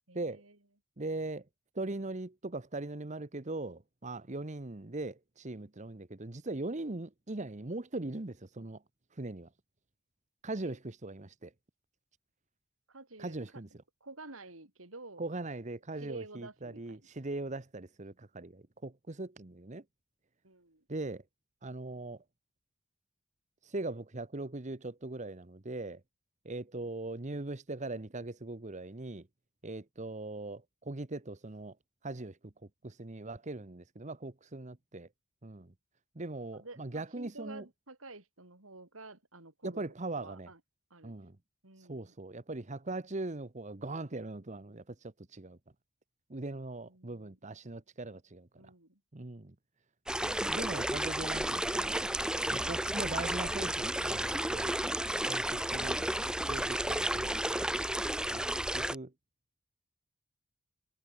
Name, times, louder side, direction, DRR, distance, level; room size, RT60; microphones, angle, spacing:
voice 1, 0.1-0.6 10.6-10.8 12.9-13.4 14.0-15.3 16.0-17.1 20.4-20.8 36.5-39.9 40.2-40.6 40.9-41.2 41.6-42.1 46.8-47.4 48.6-49.0, right 2 dB, 90° right, 5.4 m, -50 dB
voice 2, 1.0-1.4 1.7-8.8 9.2-9.5 10.4-11.5 13.2-13.7 15.2-19.8 20.9-21.2 21.6-22.2 23.6-26.0 26.4-29.2 29.6-31.8 32.0-32.5 32.8-35.1 35.4-35.7 36.1-37.6 39.6-40.5 41.0-41.4 41.8-45.6 46.3-48.7 49.1-49.5 50.2-52.0 52.5-54.8 55.3-55.4 55.7-57.4 58.3-58.4 58.7-59.1, right 2 dB, 35° right, 1.1 m, -40 dB
sound 1, 50.1-58.9, right 1 dB, 5° right, 0.5 m, -32 dB
head